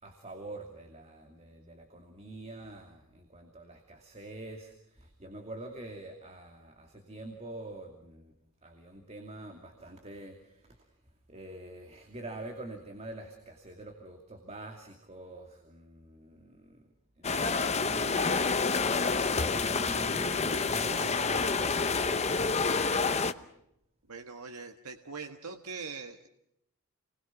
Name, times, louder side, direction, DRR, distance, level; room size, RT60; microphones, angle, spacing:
voice 1, 0.0-8.3 8.6-10.9 11.3-16.9 17.2-23.4, right 2 dB, 30° right, 3 dB, 2.6 m, -46 dB
sound 1, 17.2-23.3, left 4 dB, 30° left, 0.8 m, -28 dB
voice 2, 24.1-26.3, right 4 dB, 80° right, 5 dB, 1.5 m, -42 dB
29.0 x 21.0 x 5.9 m, 0.76 s
head